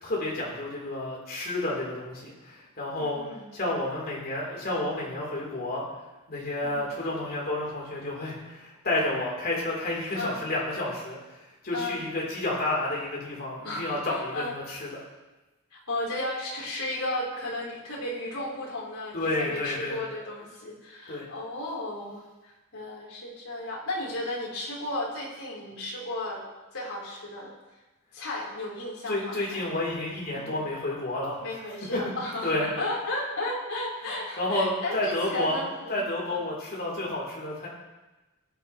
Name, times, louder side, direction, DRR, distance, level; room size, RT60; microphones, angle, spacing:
voice 1, 0.0-3.2 3.5-5.8 6.3-11.2 11.6-14.9 19.1-20.0 21.1-21.2 29.1-31.4 31.9-32.0 32.4-32.7 34.4-35.6 35.9-37.7, left 1 dB, 45° left, -4 dB, 3.8 m, -30 dB
voice 2, 3.0-3.5 6.6-6.8 10.1-10.4 11.7-12.0 13.6-14.6 15.7-26.4 26.7-27.5 28.1-29.6 30.3-30.6 31.4-36.4, left 1 dB, 75° left, -5 dB, 4.2 m, -34 dB
20.5 x 9.2 x 3.2 m, 1.1 s
head